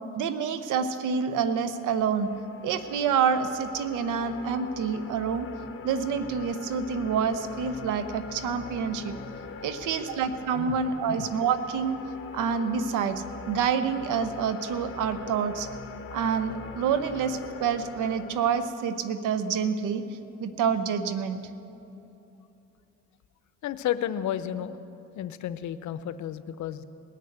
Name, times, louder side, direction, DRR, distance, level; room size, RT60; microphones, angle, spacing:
voice 1, 0.1-2.3 2.6-5.5 5.8-9.1 9.6-12.0 12.3-15.7 16.1-20.0 20.4-21.4, right 6 dB, 90° right, 11 dB, 0.9 m, -27 dB
sound 1, 1.9-18.7, left 5 dB, 45° left, 1.0 m, -43 dB
voice 2, 23.6-24.8 25.2-26.8, left 11 dB, 75° left, 13 dB, 0.7 m, -32 dB
18.5 x 6.7 x 8.0 m, 2.8 s
cardioid pair, 90°, 30 cm